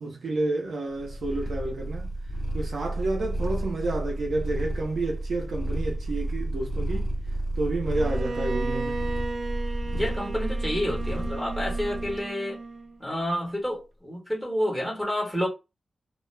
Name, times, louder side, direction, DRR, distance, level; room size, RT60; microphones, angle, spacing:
voice 1, 0.0-2.1 2.5-7.1 7.6-9.0, right 2 dB, 85° right, 0.7 m, -30 dB
Purr, 0.9-12.2, right 1 dB, 45° left, 0.8 m, -31 dB
Bowed string instrument, 7.9-13.0, right 3 dB, 55° right, 0.4 m, -35 dB
voice 2, 9.9-12.6 13.0-15.5, equal, 5° right, 1.1 m, -29 dB
2.2 x 2.1 x 3.2 m
wide cardioid pair, 130°, 0 cm